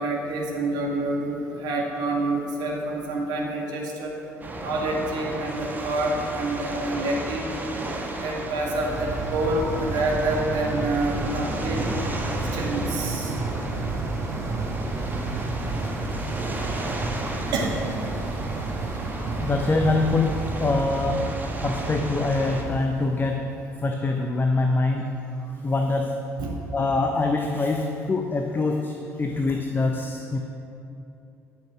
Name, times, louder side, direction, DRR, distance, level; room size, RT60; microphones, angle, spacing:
voice 1, 0.0-4.1 4.6-7.5 8.1-11.8 12.5-13.4 17.5-17.8 26.4-26.5, right 2 dB, 55° right, -1 dB, 2.0 m, -27 dB
sound 1, 4.4-22.6, right 1 dB, 20° right, 1.7 m, -33 dB
sound 2, 8.7-23.7, right 3 dB, 40° right, 1.3 m, -32 dB
voice 2, 19.4-23.5 23.8-25.2 25.6-26.2 26.7-30.4, left 3 dB, 25° left, 3 dB, 0.8 m, -24 dB
11.5 x 6.8 x 6.1 m, 2.8 s
figure-of-eight pair, 55°, 8 cm